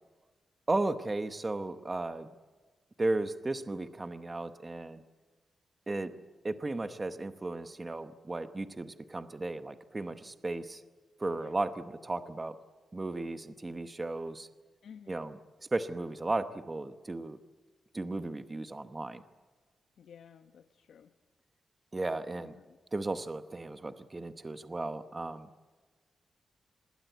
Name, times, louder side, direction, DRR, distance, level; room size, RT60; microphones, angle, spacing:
voice 1, 0.7-2.3 3.0-5.0 5.9-6.1 6.4-10.8 11.2-12.5 12.9-14.5 15.1-15.4 15.7-17.4 17.9-19.2 21.9-22.6 22.9-25.5, right 2 dB, 20° right, 10 dB, 0.9 m, -35 dB
voice 2, 14.8-15.2 20.0-21.1 22.3-22.8, left 7 dB, 75° left, 9 dB, 1.0 m, -54 dB
27.0 x 20.5 x 9.2 m, 1.3 s
wide cardioid pair, 175°, 0 cm